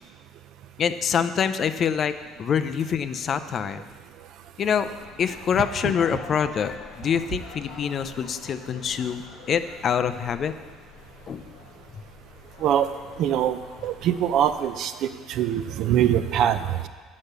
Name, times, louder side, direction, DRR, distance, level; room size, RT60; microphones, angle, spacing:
voice 1, 0.8-2.1 2.4-3.9 4.6-4.9 5.2-10.5 11.3-11.4, left 7 dB, 35° left, 11 dB, 0.4 m, -25 dB
sound 1, 4.7-14.8, left 6 dB, 60° left, 0.9 m, -47 dB
voice 2, 13.2-13.6 13.8-14.9 15.3-16.9, right 10 dB, 55° right, 11 dB, 0.5 m, -23 dB
8.4 x 6.0 x 6.6 m, 1.5 s
cardioid pair, 145°, 0 cm